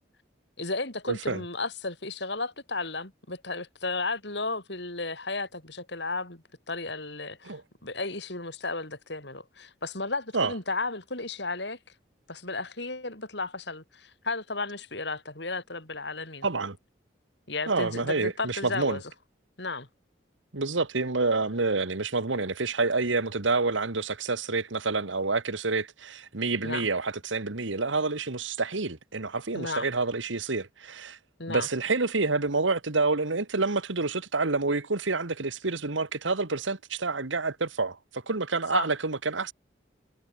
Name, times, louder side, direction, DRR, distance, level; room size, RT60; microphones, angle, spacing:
voice 1, 0.6-11.8 12.3-16.5 17.5-19.0 19.6-19.9 26.6-26.9 29.5-29.9 31.4-31.7 38.7-38.9, left 3 dB, 65° left, 5.9 m, -34 dB
voice 2, 1.1-1.4 7.5-7.6 10.3-10.5 16.4-16.8 17.7-19.0 20.5-31.2 31.5-39.5, right 3 dB, 85° right, 1.6 m, -28 dB
head